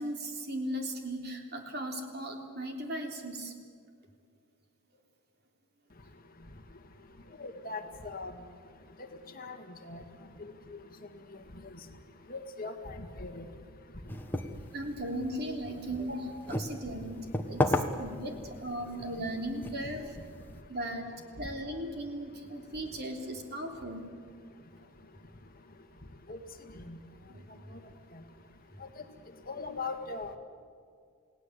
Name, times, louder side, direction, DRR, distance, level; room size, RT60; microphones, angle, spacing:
voice 1, 0.0-3.5 14.7-17.2 17.5-18.3 18.6-20.0 20.7-21.1 21.4-24.0 27.3-27.7, right 1 dB, 45° right, 3 dB, 3.4 m, -37 dB
voice 2, 7.4-8.3 9.4-9.6 9.8-10.0 10.4-10.5 12.3-12.9 13.2-13.4 26.3-26.4 26.9-27.0 29.5-30.4, left 3 dB, 40° left, 6 dB, 1.8 m, -39 dB
sound 1, 14.1-20.6, left 1 dB, 10° left, 1.2 m, -36 dB
29.0 x 18.0 x 8.2 m, 2.2 s
head